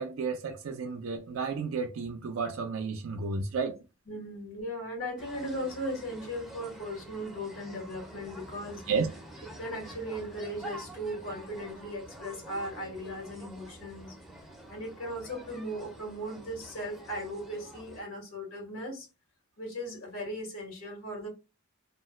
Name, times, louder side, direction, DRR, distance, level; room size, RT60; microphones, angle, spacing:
voice 1, 0.0-3.8 8.9-9.1, right 4 dB, 70° right, 0.4 m, -32 dB
voice 2, 4.1-8.8 9.4-14.2 14.7-19.1 19.6-21.3, equal, 80° left, 1.3 m, -37 dB
sound 1, 5.2-18.0, right 1 dB, ahead, 0.5 m, -48 dB
2.4 x 2.1 x 3.5 m
head